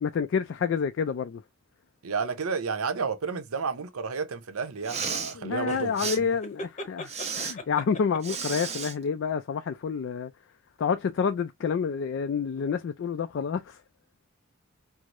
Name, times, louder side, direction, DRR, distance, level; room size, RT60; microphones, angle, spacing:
voice 1, 0.0-1.4 5.4-10.3 10.8-13.8, left 6 dB, 60° left, 0.3 m, -28 dB
voice 2, 2.0-5.9, right 5 dB, 90° right, 0.7 m, -31 dB
Respiratory sounds, 4.7-5.3 6.0-6.2 7.1-7.5 8.2-8.9, right 6 dB, 30° right, 0.7 m, -33 dB
sound 1, 5.7-8.5, left 1 dB, 35° left, 0.7 m, -39 dB
4.6 x 2.0 x 2.5 m
head